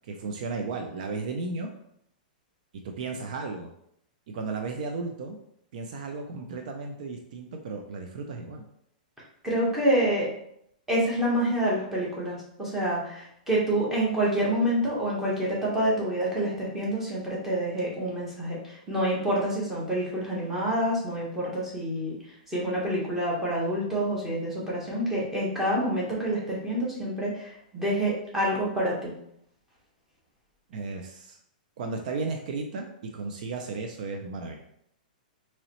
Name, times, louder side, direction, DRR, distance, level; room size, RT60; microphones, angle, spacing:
voice 1, 0.0-1.7 2.8-3.7 4.3-5.4 5.7-8.6 30.7-31.4 31.8-34.6, right 4 dB, 60° right, 3 dB, 0.5 m, -34 dB
voice 2, 9.4-10.3 10.9-22.2 22.5-29.1, right 1 dB, 5° right, -6 dB, 1.3 m, -27 dB
3.8 x 3.0 x 3.0 m, 0.73 s
hypercardioid pair, 145°, 5 cm